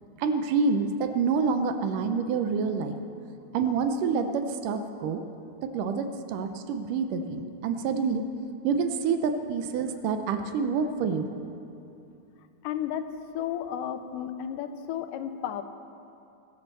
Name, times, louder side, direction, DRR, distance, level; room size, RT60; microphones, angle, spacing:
voice 1, 0.2-3.0 3.5-5.2 5.6-8.3 8.6-11.3, right 5 dB, 80° right, 7 dB, 2.4 m, -27 dB
voice 2, 12.6-13.1 13.3-15.6, left 10 dB, 85° left, 9 dB, 2.3 m, -33 dB
22.0 x 7.7 x 6.8 m, 2.7 s
omnidirectional pair, 3.7 m